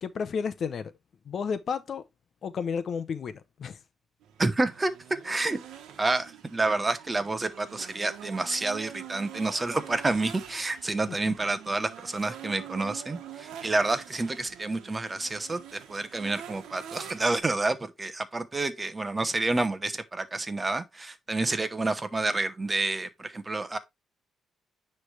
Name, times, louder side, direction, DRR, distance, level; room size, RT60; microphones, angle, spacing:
voice 1, 0.0-0.9 1.3-2.0 2.4-3.8 11.3-11.4, left 6 dB, 55° left, 0.7 m, -32 dB
sound 1, 4.2-17.4, right 9 dB, 80° right, 1.2 m, -45 dB
voice 2, 4.4-4.9 5.2-5.6 6.0-23.8, right 2 dB, 20° right, 0.9 m, -29 dB
9.8 x 3.3 x 3.2 m
cardioid pair, 90°, 0 cm